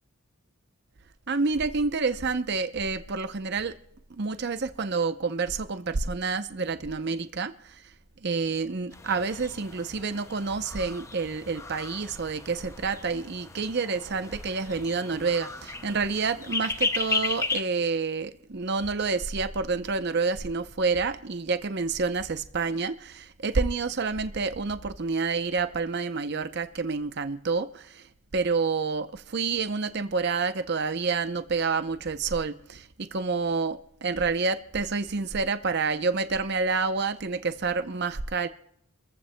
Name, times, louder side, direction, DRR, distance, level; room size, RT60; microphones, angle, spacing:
voice 1, 1.3-3.8 4.1-7.9 8.2-28.1 28.3-38.5, right 4 dB, 50° right, 0.6 m, -28 dB
sound 1, 8.9-17.6, left 3 dB, 15° left, 0.4 m, -35 dB
30.0 x 14.5 x 2.2 m
head